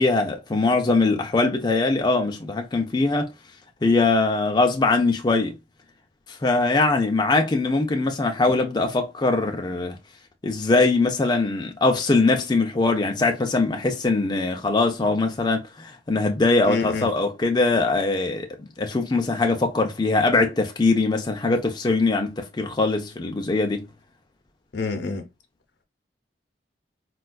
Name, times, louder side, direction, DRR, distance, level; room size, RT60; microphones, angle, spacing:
voice 1, 0.0-3.3 3.8-5.5 6.3-10.0 10.4-18.5 18.8-23.9, left 3 dB, 25° left, 0.4 m, -22 dB
voice 2, 16.6-17.1 24.7-25.3, left 4 dB, 75° left, 0.7 m, -27 dB
4.2 x 2.3 x 2.2 m
head